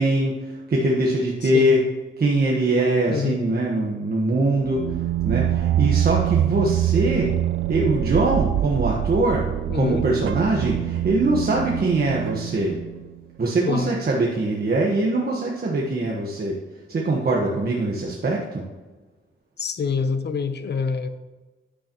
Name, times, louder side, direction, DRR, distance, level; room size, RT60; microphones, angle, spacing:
voice 1, 0.0-1.8 2.2-5.0 5.2-7.3 7.7-9.5 9.7-12.8 13.4-16.6 16.9-18.6, right 2 dB, 50° right, -2 dB, 1.3 m, -22 dB
voice 2, 1.4-1.8 3.1-3.4 9.7-10.0 13.6-14.0 19.6-21.1, left 5 dB, 55° left, 10 dB, 0.8 m, -26 dB
sound 1, 4.7-13.2, right 12 dB, 75° right, 0.4 m, -25 dB
10.0 x 8.2 x 3.0 m, 1.2 s
wide cardioid pair, 115°, 21 cm